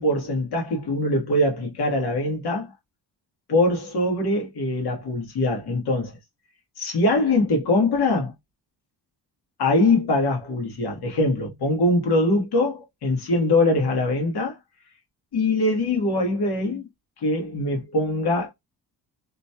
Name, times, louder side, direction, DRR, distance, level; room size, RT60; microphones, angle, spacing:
voice 1, 0.0-2.7 3.5-6.1 6.8-8.3 9.6-14.6 15.3-16.9 17.2-18.5, left 2 dB, 75° left, 1.5 m, -22 dB
3.0 x 2.8 x 2.2 m
cardioid pair, 105°, 39 cm